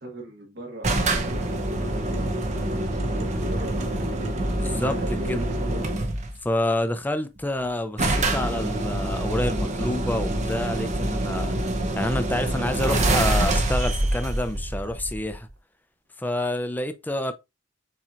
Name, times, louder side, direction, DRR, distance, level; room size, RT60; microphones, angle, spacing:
voice 1, 0.0-4.1 4.8-6.0, right 1 dB, 60° right, 1.6 m, -39 dB
sound 1, 0.8-6.4 7.4-7.5 7.6-7.7 8.0-15.5, right 1 dB, 35° right, 0.7 m, -26 dB
voice 2, 4.6-5.0 5.3-5.4 6.4-11.7 12.0-15.5 16.2-17.3, left 1 dB, 10° left, 0.4 m, -28 dB
7.2 x 2.8 x 2.5 m
head